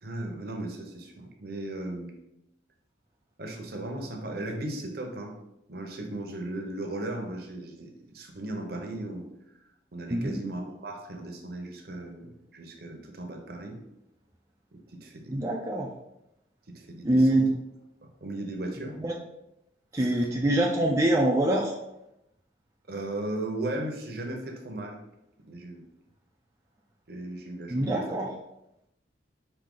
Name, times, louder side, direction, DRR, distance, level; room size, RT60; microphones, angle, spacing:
voice 1, 0.0-2.1 3.4-5.4 5.7-9.3 9.9-13.8 14.7-15.4 16.7-17.4 18.2-19.0 20.0-20.3 22.9-25.0 25.5-25.8 27.1-28.0, right 1 dB, 55° right, 3 dB, 0.8 m, -36 dB
voice 2, 15.3-15.9 17.0-17.5 19.0-19.1 19.9-21.7 27.7-28.3, right 1 dB, 15° right, -2 dB, 0.4 m, -24 dB
5.0 x 2.7 x 3.7 m, 0.85 s
head